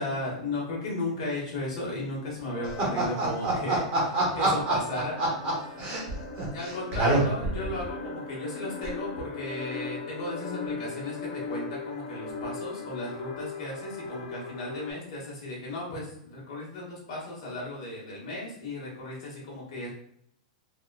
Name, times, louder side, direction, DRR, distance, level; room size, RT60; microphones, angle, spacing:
voice 1, 0.0-3.8 4.3-5.2 6.5-19.9, left 2 dB, 55° left, -4 dB, 1.4 m, -35 dB
sound 1, 2.5-14.9, left 3 dB, 80° left, 0.8 m, -39 dB
voice 2, 3.0-4.7 5.2-6.0 6.4-7.2, right 2 dB, 30° right, -3 dB, 1.0 m, -27 dB
3.4 x 2.3 x 2.5 m, 0.68 s
supercardioid pair, 165°, 4 cm